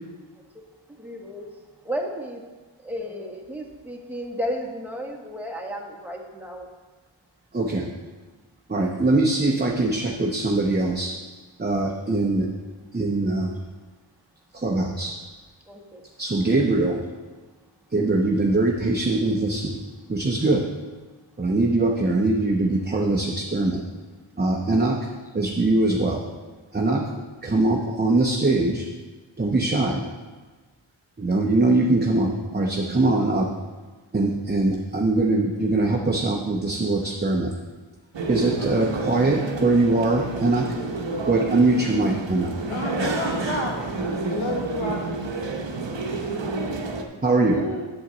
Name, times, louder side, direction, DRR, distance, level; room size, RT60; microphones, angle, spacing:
voice 1, 1.0-1.6 1.8-2.4 2.8-6.7 11.8-11.9 15.7-16.0, equal, 5° right, 0 dB, 1.2 m, -33 dB
voice 2, 7.5-7.9 8.7-11.1 11.6-12.5 12.9-13.5 14.5-15.1 16.2-17.0 17.9-19.8 20.1-20.6 21.4-23.8 24.4-25.0 25.3-26.2 26.7-27.1 27.4-28.8 29.4-30.0 31.2-33.5 34.1-37.5 38.3-40.7 41.3-42.5 47.2-47.6, right 2 dB, 20° right, 0 dB, 0.8 m, -22 dB
sound 1, 38.1-47.0, right 3 dB, 65° right, 0.9 m, -29 dB
voice 3, 42.5-43.8 44.3-45.0 47.5-47.8, left 2 dB, 80° left, 1 dB, 1.3 m, -30 dB
8.4 x 7.3 x 3.9 m, 1.3 s
wide cardioid pair, 55°, 48 cm